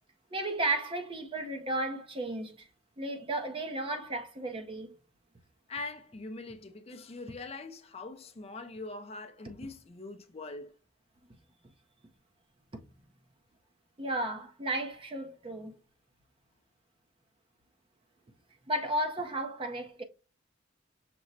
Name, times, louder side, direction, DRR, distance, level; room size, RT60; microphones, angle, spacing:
voice 1, 0.3-2.7 3.0-5.0 14.0-15.8 18.7-20.0, right 1 dB, 25° right, 0.5 m, -34 dB
voice 2, 5.7-10.7, left 3 dB, 30° left, 0.5 m, -42 dB
6.0 x 2.1 x 3.9 m
head